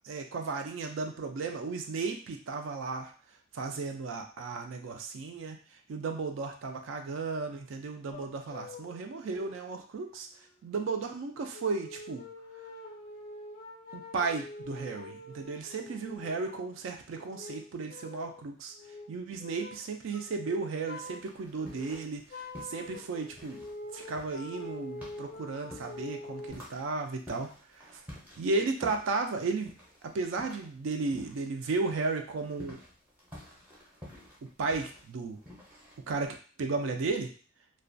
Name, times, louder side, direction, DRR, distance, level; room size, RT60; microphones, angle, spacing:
voice 1, 0.0-3.1 3.5-5.6 5.9-10.3 10.6-12.3 13.9-18.7 19.1-22.2 22.7-23.6 23.9-27.5 28.4-29.7 30.0-32.8 34.6-35.4 36.1-37.3, right 4 dB, 65° right, 4 dB, 0.3 m, -34 dB
sound 1, 8.1-9.0 9.2-9.7 10.5-10.6 11.5-16.7 17.1-18.4 18.7-19.1 19.4-19.8 20.1-21.3 21.5-26.5, left 2 dB, 45° left, 0.4 m, -45 dB
sound 2, 21.0-22.2 22.5-31.5 31.8-36.3, left 1 dB, 5° right, 0.6 m, -50 dB
2.3 x 2.1 x 2.5 m, 0.40 s
head